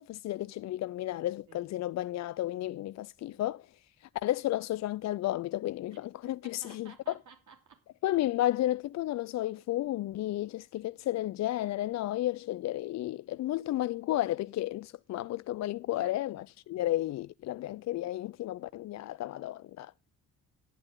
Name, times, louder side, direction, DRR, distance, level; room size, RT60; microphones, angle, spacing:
voice 1, 0.0-3.6 4.0-6.9 8.0-19.9, left 14 dB, 45° left, 0.4 m, -32 dB
voice 2, 6.4-7.8 16.0-16.2, right 6 dB, 45° right, 3.0 m, -53 dB
11.5 x 11.0 x 3.8 m
hypercardioid pair, 45°, 41 cm